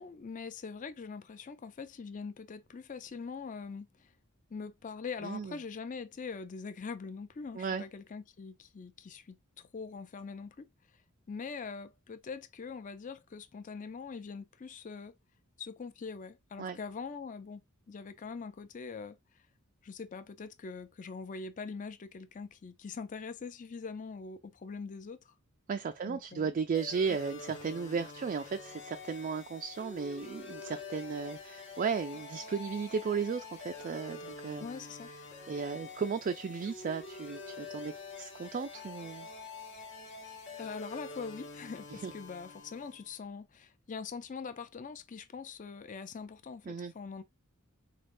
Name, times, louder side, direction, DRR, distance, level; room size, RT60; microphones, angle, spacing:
voice 1, 0.0-4.1 4.5-10.7 11.3-15.1 15.6-19.2 19.8-25.3 26.0-26.5 34.6-35.1 40.2-47.2, left 5 dB, 35° left, 0.4 m, -43 dB
voice 2, 5.2-5.6 7.6-7.8 16.6-16.8 25.7-34.7 35.5-39.3 42.0-42.1 46.7-46.9, right 5 dB, 40° right, 0.3 m, -35 dB
sound 1, 26.7-43.2, left 4 dB, 60° left, 1.0 m, -47 dB
4.2 x 3.3 x 2.5 m
head